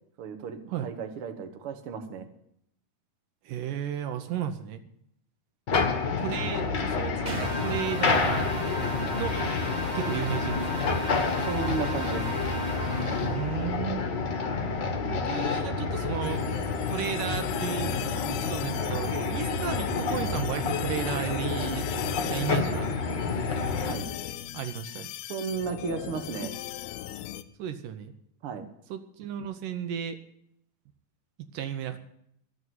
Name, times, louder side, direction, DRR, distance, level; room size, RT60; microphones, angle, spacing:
voice 1, 0.2-2.3 11.4-12.3 23.9-24.1 25.3-26.5 28.4-28.7, right 5 dB, 55° right, 6 dB, 1.6 m, -34 dB
voice 2, 3.5-4.8 6.2-8.5 9.1-9.4 9.9-10.8 13.2-14.0 15.1-16.4 16.9-17.9 18.3-21.9 22.3-22.9 24.5-25.1 27.6-28.1 28.9-30.2 31.5-32.0, right 9 dB, 70° right, 8 dB, 2.3 m, -34 dB
sound 1, 5.7-23.9, left 4 dB, 50° left, 1.4 m, -29 dB
sound 2, 7.3-13.7, equal, 35° right, 0.7 m, -35 dB
sound 3, 16.2-27.4, left 13 dB, 90° left, 2.5 m, -39 dB
14.0 x 8.1 x 9.2 m, 0.72 s
omnidirectional pair, 4.2 m